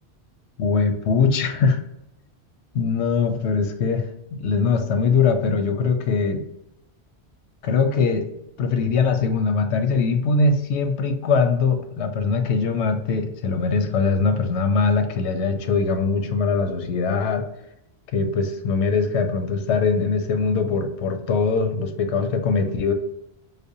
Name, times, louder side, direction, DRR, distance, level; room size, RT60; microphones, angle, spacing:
voice 1, 0.6-1.8 2.7-6.4 7.6-8.3 8.6-17.5 18.1-22.9, left 4 dB, 85° left, 7 dB, 0.9 m, -22 dB
5.0 x 2.1 x 2.6 m, 0.84 s
omnidirectional pair, 1.1 m